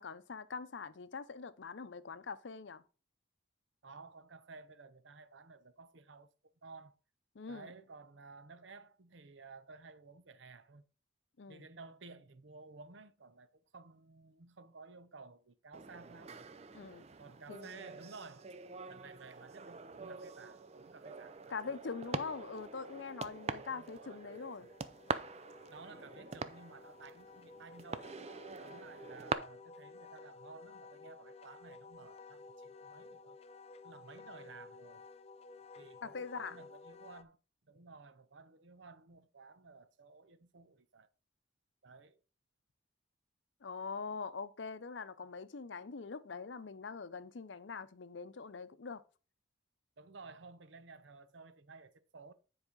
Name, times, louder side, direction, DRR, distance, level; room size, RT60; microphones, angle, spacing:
voice 1, 0.0-2.8 7.3-7.7 11.4-11.6 16.7-17.1 17.5-17.9 21.5-24.7 36.0-36.6 43.6-49.0, left 5 dB, 75° left, 0.6 m, -43 dB
voice 2, 3.8-7.0 7.4-10.9 11.5-16.4 17.2-18.5 18.9-21.8 23.5-24.7 25.7-28.1 28.6-33.4 33.8-35.1 35.7-37.4 37.7-41.1 41.8-42.2 50.0-52.3, right 4 dB, 75° right, 0.8 m, -55 dB
sound 1, 15.7-29.3, right 4 dB, 35° right, 0.5 m, -44 dB
Wind instrument woodwind instrument, 22.9-37.2, left 4 dB, 30° left, 0.4 m, -55 dB
9.8 x 4.9 x 3.8 m
head